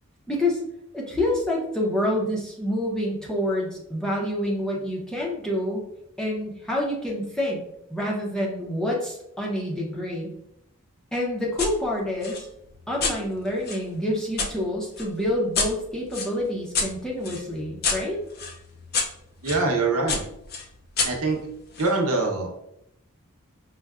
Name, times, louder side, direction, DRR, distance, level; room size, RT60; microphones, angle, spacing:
voice 1, 0.3-0.6 0.9-5.8 6.2-7.6 7.9-10.3 11.1-12.5 12.9-18.2, left 1 dB, 5° left, -3 dB, 0.6 m, -27 dB
sound 1, 11.6-11.7 12.2-14.5 15.0-19.6 20.1-22.0, left 4 dB, 45° left, 0.5 m, -30 dB
voice 2, 19.4-20.2 21.0-21.4 21.8-22.5, right 3 dB, 90° right, 1 dB, 0.8 m, -23 dB
5.4 x 2.2 x 2.3 m, 0.79 s
head